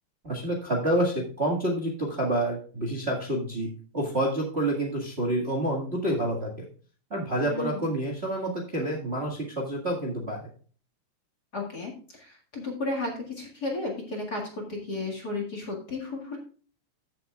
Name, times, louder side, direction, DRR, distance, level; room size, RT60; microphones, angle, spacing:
voice 1, 0.2-6.6 7.1-10.4, right 1 dB, 25° right, -1 dB, 1.6 m, -28 dB
voice 2, 7.5-7.8 11.5-16.4, left 2 dB, 35° left, 1 dB, 2.1 m, -33 dB
15.0 x 7.5 x 2.3 m, 0.41 s
omnidirectional pair, 3.4 m